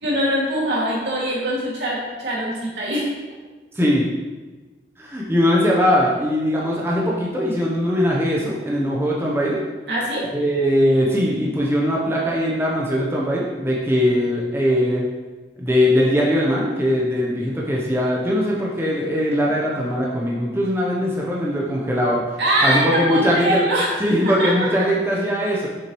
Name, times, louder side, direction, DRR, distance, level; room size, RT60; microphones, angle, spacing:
voice 1, 0.0-3.1 9.9-10.3 22.4-24.9, right 1 dB, 75° right, -5 dB, 2.3 m, -23 dB
voice 2, 3.7-4.1 5.0-9.6 10.3-15.0 15.6-22.2 22.6-23.7 24.0-25.7, equal, 15° right, -4 dB, 0.8 m, -20 dB
7.0 x 6.4 x 3.1 m, 1.2 s
head